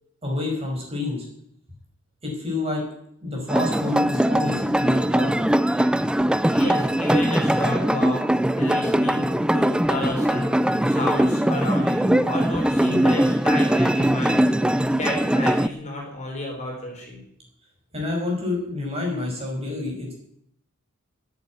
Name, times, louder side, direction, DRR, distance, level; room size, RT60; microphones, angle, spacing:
voice 1, 0.2-1.2 2.2-2.8 3.2-5.4 17.9-20.1, left 2 dB, 30° right, -1 dB, 5.8 m, -28 dB
sound 1, 3.5-15.7, right 1 dB, 5° right, 0.4 m, -21 dB
voice 2, 6.5-17.2, left 1 dB, 35° left, 0 dB, 4.0 m, -31 dB
10.5 x 9.2 x 9.7 m, 0.72 s
head